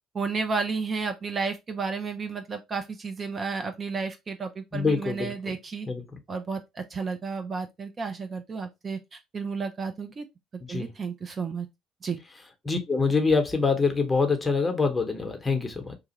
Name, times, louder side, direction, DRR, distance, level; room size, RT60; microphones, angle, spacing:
voice 1, 0.1-5.9 6.3-10.3 10.7-11.7 12.0-12.2, right 4 dB, 35° right, 0.5 m, -32 dB
voice 2, 4.7-5.5 5.9-6.0 10.7-10.9 12.6-16.0, left 4 dB, 20° left, 0.9 m, -25 dB
2.9 x 2.3 x 2.9 m
hypercardioid pair, 65°, 0 cm